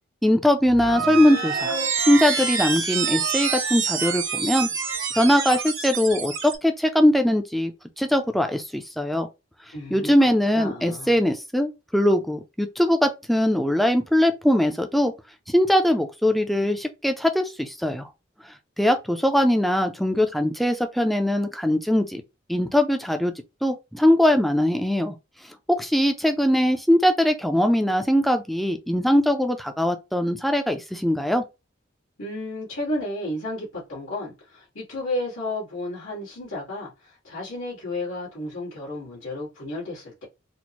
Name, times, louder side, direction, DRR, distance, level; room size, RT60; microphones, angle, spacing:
voice 1, 0.2-1.8 2.1-4.7 5.1-7.7 8.0-9.3 9.9-15.1 15.5-18.1 18.8-22.2 22.5-23.3 23.6-25.1 25.7-31.4, left 1 dB, ahead, 0.4 m, -21 dB
sound 1, 0.6-6.6, right 6 dB, 70° right, 1.2 m, -27 dB
voice 2, 9.7-10.1 10.5-11.2 32.2-40.3, left 1 dB, 85° left, 2.0 m, -32 dB
4.2 x 2.1 x 2.9 m
head